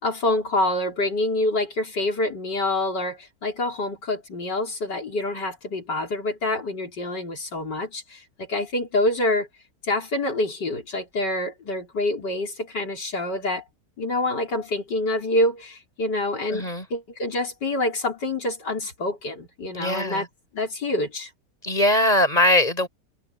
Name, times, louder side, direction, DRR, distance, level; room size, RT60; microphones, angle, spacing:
voice 1, 0.0-9.5 9.8-13.6 14.0-20.3 20.5-21.3, left 2 dB, 85° left, 4.9 m, -26 dB
voice 2, 16.5-16.8 19.7-20.3 21.6-22.9, left 1 dB, 20° left, 6.4 m, -21 dB
omnidirectional pair, 1.8 m